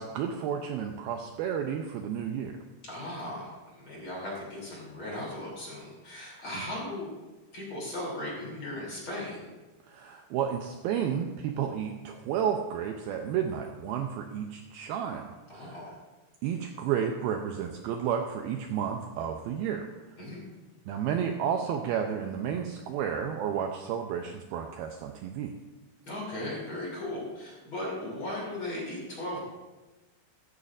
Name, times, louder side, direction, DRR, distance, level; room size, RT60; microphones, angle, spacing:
voice 1, 0.0-2.6 6.5-6.6 9.9-15.3 15.5-16.0 16.4-19.9 20.9-25.5, right 8 dB, 85° right, 3 dB, 2.2 m, -32 dB
voice 2, 2.8-7.1 7.5-9.4 15.5-16.0 20.2-20.4 26.0-29.5, left 1 dB, 30° left, -4 dB, 3.4 m, -37 dB
14.0 x 13.5 x 2.5 m, 1.2 s
omnidirectional pair, 5.0 m